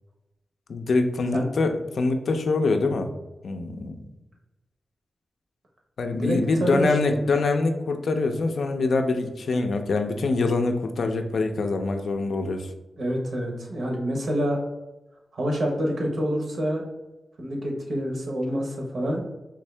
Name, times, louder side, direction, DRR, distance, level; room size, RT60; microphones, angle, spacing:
voice 1, 0.7-3.1 3.4-4.1 6.0-12.7, left 3 dB, 70° left, 6 dB, 0.4 m, -24 dB
voice 2, 6.1-6.9 13.0-14.6 15.3-16.8 17.4-19.2, equal, 65° right, 1 dB, 0.8 m, -27 dB
3.5 x 2.7 x 3.2 m, 1.0 s
wide cardioid pair, 115°, 0 cm